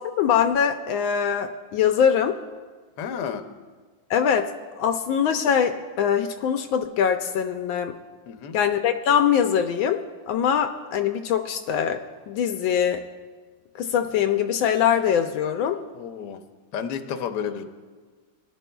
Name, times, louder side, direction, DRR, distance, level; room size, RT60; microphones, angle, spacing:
voice 1, 0.2-2.4 4.1-4.5 4.8-8.0 8.5-13.0 13.8-15.8, left 8 dB, 80° left, 6 dB, 1.4 m, -23 dB
voice 2, 3.0-3.4 8.3-8.6 15.9-16.4 16.7-17.6, left 7 dB, 65° left, 7 dB, 1.3 m, -31 dB
22.5 x 11.5 x 2.3 m, 1.4 s
omnidirectional pair, 2.2 m